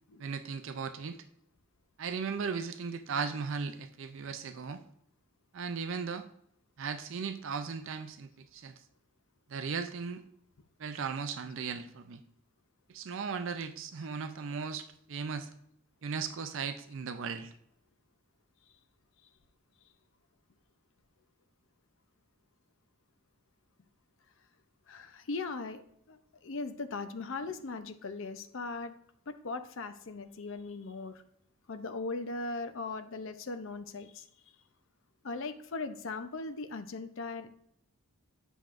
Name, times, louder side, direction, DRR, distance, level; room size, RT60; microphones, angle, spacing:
voice 1, 0.2-1.2 2.0-4.8 5.5-6.2 6.8-8.7 9.5-10.2 10.8-12.2 12.9-15.5 16.0-17.5, right 5 dB, 55° right, 9 dB, 0.4 m, -37 dB
voice 2, 24.9-25.8 26.1-28.9 29.3-31.2 31.7-34.3 35.2-37.5, left 3 dB, 60° left, 9 dB, 0.5 m, -39 dB
8.2 x 5.9 x 2.5 m, 0.71 s
head